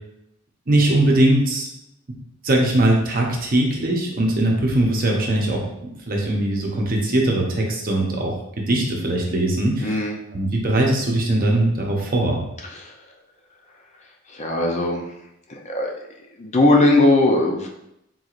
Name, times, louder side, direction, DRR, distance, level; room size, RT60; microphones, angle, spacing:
voice 1, 0.7-1.7 2.1-2.2 2.4-8.3 8.7-10.0 10.3-12.4, right 1 dB, 45° right, -1 dB, 0.8 m, -20 dB
voice 2, 9.8-10.1 14.3-15.0 15.7-15.9 16.4-17.7, left 2 dB, 35° left, 1 dB, 0.5 m, -18 dB
4.6 x 3.8 x 2.5 m, 0.83 s
head